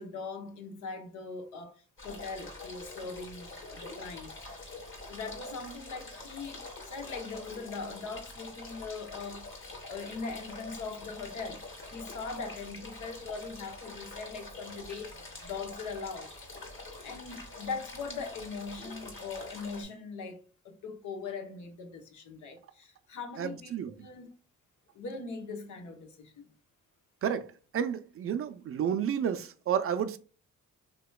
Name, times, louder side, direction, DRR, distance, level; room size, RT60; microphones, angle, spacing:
voice 1, 0.0-4.4 5.0-9.5 9.9-11.6 11.9-16.3 17.0-24.3 24.9-26.5, left 4 dB, 75° left, 0.9 m, -41 dB
sound 1, 2.0-19.8, left 2 dB, 40° left, 1.7 m, -45 dB
voice 2, 23.4-23.9 27.2-27.5 27.7-30.2, right 8 dB, 50° right, 0.4 m, -31 dB
3.3 x 2.9 x 2.2 m
cardioid pair, 90°, 30 cm